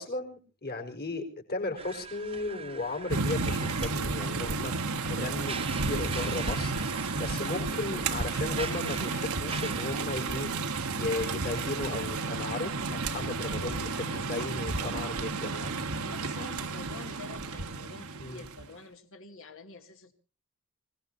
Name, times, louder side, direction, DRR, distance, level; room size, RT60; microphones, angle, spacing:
voice 1, 0.0-10.5 10.9-15.8 18.2-18.4, left 2 dB, 45° left, 4.3 m, -36 dB
sound 1, 1.8-10.3, right 5 dB, 25° right, 1.2 m, -42 dB
sound 2, 3.1-18.6, right 3 dB, 75° right, 1.3 m, -32 dB
voice 2, 13.4-13.8 16.0-20.1, left 3 dB, 65° left, 2.5 m, -47 dB
26.5 x 18.0 x 2.8 m
head